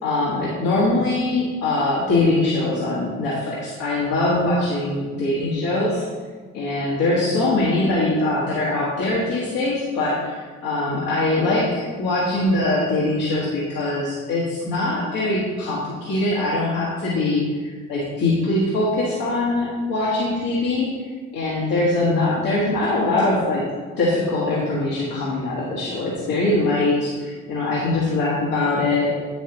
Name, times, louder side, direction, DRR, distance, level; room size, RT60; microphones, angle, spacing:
voice 1, 0.0-6.0 6.5-20.9 21.3-23.7 24.0-29.1, left 2 dB, 65° left, -7 dB, 1.7 m, -22 dB
8.6 x 7.1 x 3.0 m, 1.4 s
figure-of-eight pair, 40°, 37 cm